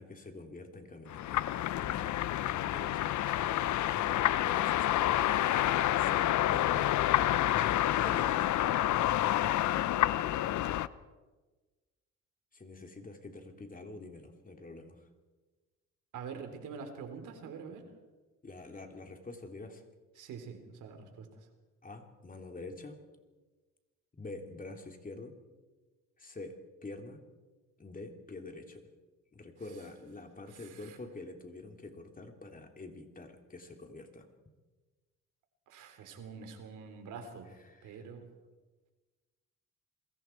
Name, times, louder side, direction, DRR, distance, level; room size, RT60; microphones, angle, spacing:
voice 1, 0.0-1.4 1.9-3.2 3.9-5.3 6.0-6.9 7.5-8.6 12.5-15.1 18.4-19.8 21.8-23.0 24.2-25.4 26.2-26.6 26.8-27.2 27.8-28.9 29.3-34.3 37.6-38.0, left 2 dB, 25° left, 4 dB, 3.2 m, -46 dB
sound 1, 1.1-10.9, left 13 dB, 70° left, 0.8 m, -28 dB
voice 2, 16.1-17.8 20.2-21.3 30.5-31.0 35.7-37.5 37.8-38.3, right 6 dB, 85° right, 6 dB, 3.7 m, -45 dB
28.0 x 22.0 x 4.6 m, 1.3 s
cardioid pair, 90°, 30 cm